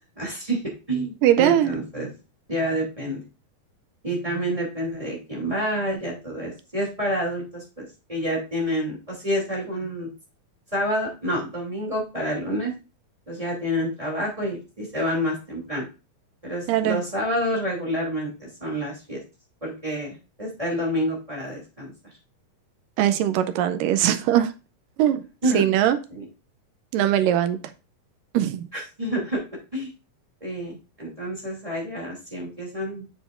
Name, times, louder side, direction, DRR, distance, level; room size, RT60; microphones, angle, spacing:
voice 1, 0.2-0.6 0.9-2.1 2.5-3.2 4.0-10.1 10.7-12.7 13.3-15.9 16.4-19.2 19.6-21.9 25.4-25.6 26.1-26.2 28.7-29.4 29.7-29.9 30.4-33.0, equal, 10° right, -2 dB, 2.2 m, -28 dB
voice 2, 1.2-1.7 16.7-17.0 23.0-24.5 25.0-25.2 25.5-26.0 26.9-27.6 28.3-28.6, right 11 dB, 80° right, 10 dB, 2.2 m, -20 dB
7.9 x 7.0 x 2.5 m, 0.31 s
omnidirectional pair, 4.1 m